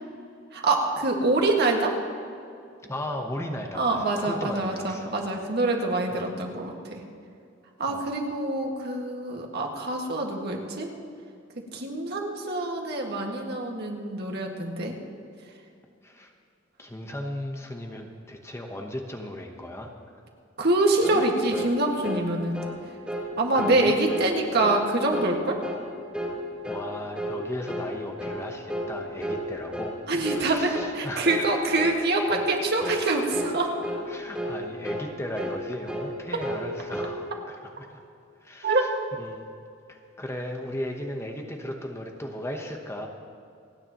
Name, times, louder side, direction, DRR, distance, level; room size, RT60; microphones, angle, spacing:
voice 1, 0.5-1.9 3.8-7.0 7.8-10.9 11.7-14.9 20.6-22.6 23.4-25.6 30.1-33.7 38.6-38.9, right 2 dB, 60° right, 1 dB, 1.8 m, -25 dB
voice 2, 2.8-5.2 6.1-6.3 7.9-8.1 16.0-16.3 16.8-19.9 21.1-21.2 23.5-24.0 26.6-29.9 30.3-31.6 34.1-38.0 38.4-38.9 39.2-39.5 39.9-43.1, left 1 dB, 15° left, 2 dB, 1.0 m, -36 dB
sound 1, 21.0-21.3 21.5-21.7 22.0-22.3 22.5-22.8 23.1-23.3 23.6-23.8 24.1-24.3 24.6-24.8 25.1-25.3 25.6-25.9 26.1-26.4 26.6-26.9 27.2-27.4 27.7-27.9 28.2-28.4 28.7-28.9 29.2-29.4 29.7-30.0 30.2-30.5 30.7-31.0 31.3-31.5 31.8-32.0 32.3-32.5 32.8-33.0 33.3-33.6 33.8-34.0 34.3-34.6 34.8-35.1 35.4-35.6 35.9-36.1 36.4-37.2, equal, 5° right, 2.8 m, -32 dB
29.0 x 9.8 x 3.0 m, 2.5 s
head